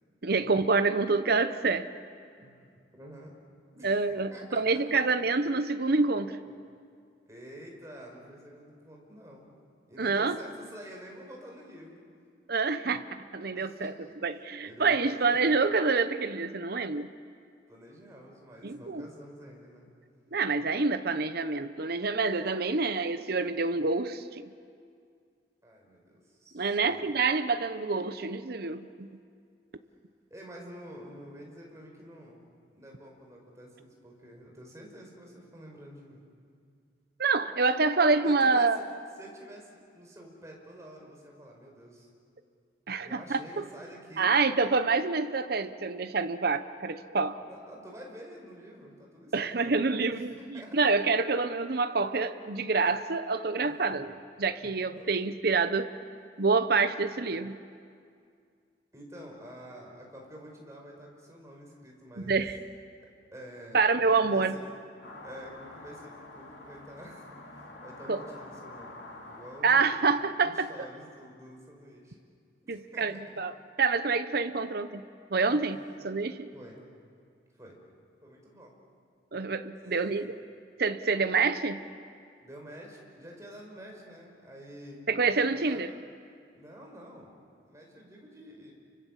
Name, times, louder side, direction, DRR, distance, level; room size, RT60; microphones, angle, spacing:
voice 1, 0.2-1.9 3.8-6.4 10.0-10.4 12.5-13.9 14.2-17.1 18.6-19.1 20.3-24.5 26.5-29.1 37.2-38.8 42.9-43.6 44.2-47.4 49.3-50.3 50.7-54.1 54.4-55.9 56.4-57.6 62.2-62.6 63.7-64.5 68.1-68.2 69.6-70.7 72.7-73.5 73.8-75.0 75.3-75.8 76.0-76.5 79.3-80.4 80.8-81.8 85.1-85.9, right 4 dB, 60° right, 10 dB, 0.9 m, -27 dB
voice 2, 2.4-3.3 3.7-3.9 4.3-4.8 7.3-9.6 9.9-12.0 13.5-14.2 14.6-15.5 17.7-19.9 25.6-27.0 30.3-36.3 38.2-38.7 39.2-42.1 43.0-44.3 47.4-49.8 50.1-50.9 53.6-54.0 54.9-55.1 58.9-62.4 63.3-64.6 65.2-70.0 70.4-72.2 72.7-73.2 75.4-75.7 76.5-76.8 77.5-77.8 78.2-78.7 79.8-80.3 82.4-85.1 85.7-85.9 86.5-88.7, equal, 15° right, -1 dB, 5.3 m, -48 dB
sound 1, 65.0-70.3, left 2 dB, 80° left, 3.6 m, -47 dB
30.0 x 24.5 x 7.5 m, 2.2 s
head